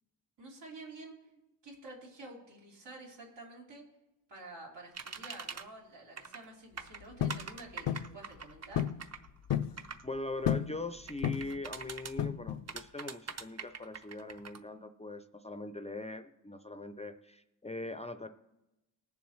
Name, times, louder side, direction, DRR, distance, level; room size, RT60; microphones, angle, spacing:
voice 1, 0.4-1.1 1.6-3.8 4.3-8.9, right 2 dB, 90° right, -4 dB, 3.4 m, -49 dB
sound 1, 4.9-5.6 6.2-6.5 6.8-10.0 11.1-12.1 12.7-14.6, right 5 dB, 40° right, 0.6 m, -43 dB
sound 2, 7.2-7.5 7.9-8.1 8.8-9.0 9.3-9.8 10.5-10.8 11.2-11.6 12.2-12.7, left 10 dB, 85° left, 0.5 m, -31 dB
voice 2, 10.0-18.3, left 2 dB, 15° left, 9 dB, 0.3 m, -41 dB
20.0 x 7.1 x 3.1 m, 0.95 s
wide cardioid pair, 155°, 41 cm